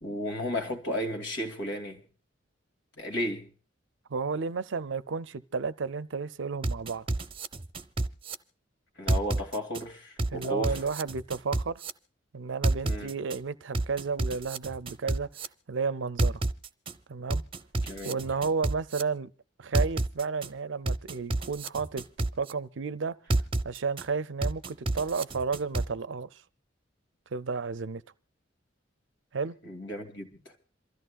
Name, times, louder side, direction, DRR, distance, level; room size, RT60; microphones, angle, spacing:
voice 1, 0.0-2.0 3.0-3.5 9.0-10.8 12.8-13.1 17.8-18.2 29.6-30.3, left 1 dB, 80° left, 2.6 m, -33 dB
voice 2, 4.1-7.1 10.3-11.8 12.3-15.3 15.7-16.4 17.1-17.4 18.0-19.3 19.6-22.0 22.3-23.2 23.6-26.4 27.3-28.0 29.3-29.6, right 5 dB, 80° right, 0.5 m, -32 dB
sound 1, 6.6-8.3 9.1-9.8 10.2-11.9 12.6-13.4 13.7-15.5 16.2-16.9 17.3-19.0 19.7-20.5 20.9-22.5 23.3-24.0 24.4-25.9, right 2 dB, 30° right, 0.7 m, -29 dB
27.5 x 14.0 x 2.4 m
head